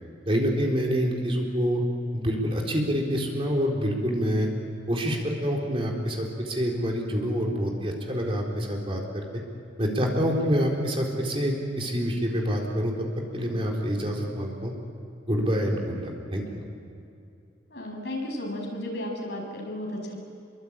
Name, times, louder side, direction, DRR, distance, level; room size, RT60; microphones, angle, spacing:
voice 1, 0.3-1.8 2.1-4.5 4.9-9.2 9.8-13.1 13.3-14.7 15.3-16.0 16.3-16.6, equal, 30° right, 0 dB, 4.0 m, -26 dB
voice 2, 17.7-20.2, left 1 dB, 65° left, 0 dB, 6.6 m, -33 dB
27.5 x 23.5 x 8.8 m, 2.6 s
head